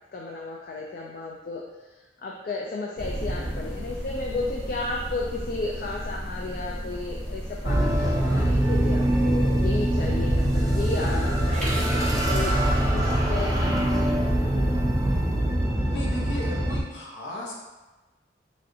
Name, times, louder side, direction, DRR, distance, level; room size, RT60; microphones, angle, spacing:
voice 1, 0.1-1.6 2.2-14.2 14.5-14.6, left 3 dB, 50° left, -2 dB, 0.3 m, -33 dB
sound 1, 3.0-12.9, equal, 5° left, 0.9 m, -35 dB
sound 2, 7.6-16.8, right 1 dB, 20° right, 0.4 m, -23 dB
voice 2, 15.9-17.5, equal, 85° left, -3 dB, 0.7 m, -35 dB
3.1 x 2.7 x 2.6 m, 1.2 s
head